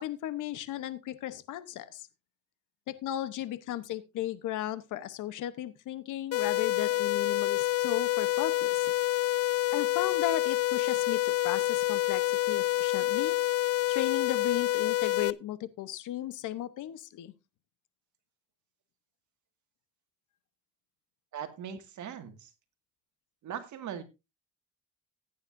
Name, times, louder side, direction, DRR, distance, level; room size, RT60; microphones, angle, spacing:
voice 1, 0.0-2.1 2.9-8.9 9.7-13.4 13.9-17.3, left 12 dB, 85° left, 13 dB, 1.0 m, -35 dB
sound 1, 6.3-15.3, left 16 dB, 55° left, 0.5 m, -28 dB
voice 2, 21.3-22.5 23.4-24.0, right 9 dB, 75° right, 8 dB, 2.0 m, -40 dB
15.0 x 9.6 x 2.6 m, 0.25 s
cardioid pair, 90°, 30 cm